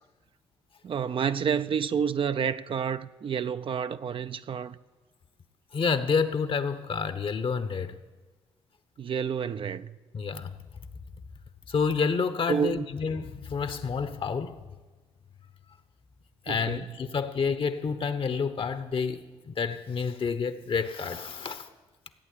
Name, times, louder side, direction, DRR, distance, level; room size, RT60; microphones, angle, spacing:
voice 1, 0.8-4.8 9.0-10.0 12.5-12.9 16.5-16.9, right 7 dB, 50° right, 0.5 m, -29 dB
voice 2, 5.7-8.0 10.1-10.5 11.7-14.6 16.4-21.7, left 5 dB, 50° left, 1.1 m, -29 dB
16.0 x 8.7 x 8.5 m
hypercardioid pair, 55°, 12 cm